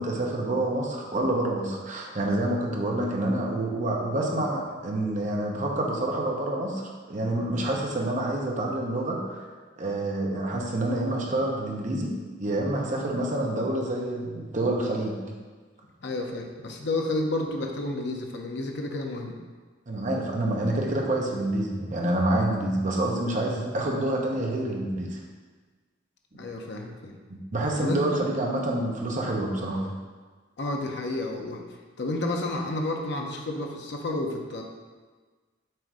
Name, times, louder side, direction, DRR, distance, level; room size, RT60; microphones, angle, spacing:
voice 1, 0.0-9.5 9.8-15.2 19.9-25.2 27.3-29.9, right 1 dB, 40° right, 0 dB, 0.8 m, -27 dB
voice 2, 16.0-19.3 26.3-27.1 27.8-28.2 30.6-31.6 32.0-34.6, left 2 dB, 60° left, 2 dB, 0.7 m, -31 dB
7.6 x 2.6 x 4.7 m, 1.4 s
head